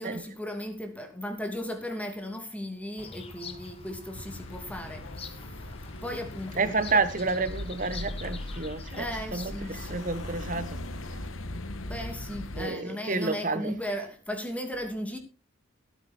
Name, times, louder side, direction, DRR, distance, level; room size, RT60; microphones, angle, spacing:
voice 1, 0.0-5.6 6.0-7.0 9.0-10.1 11.8-15.2, equal, 5° left, 2.7 m, -36 dB
Bird vocalization bird call bird song, 3.0-9.7, left 3 dB, 30° left, 1.7 m, -45 dB
sound 1, 4.1-12.7, left 1 dB, 75° left, 1.4 m, -39 dB
voice 2, 6.6-9.0 9.3-10.8 11.1-11.2 12.6-13.7, right 3 dB, 40° right, 1.3 m, -30 dB
17.0 x 9.2 x 4.5 m
head